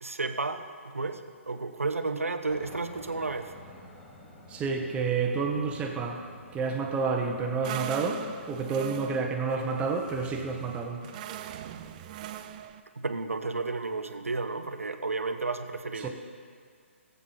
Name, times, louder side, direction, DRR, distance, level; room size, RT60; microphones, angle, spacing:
voice 1, 0.0-3.5 13.0-16.1, right 3 dB, 85° right, 9 dB, 0.8 m, -32 dB
Aircraft, 2.5-9.3, left 1 dB, 20° left, 2.9 m, -51 dB
voice 2, 4.5-6.2 6.5-11.0 16.0-16.1, right 4 dB, 15° right, 2 dB, 1.0 m, -29 dB
sound 1, 7.6-12.8, right 11 dB, 35° right, 0.4 m, -41 dB
15.5 x 8.2 x 4.1 m, 2.1 s
figure-of-eight pair, 135°, 7 cm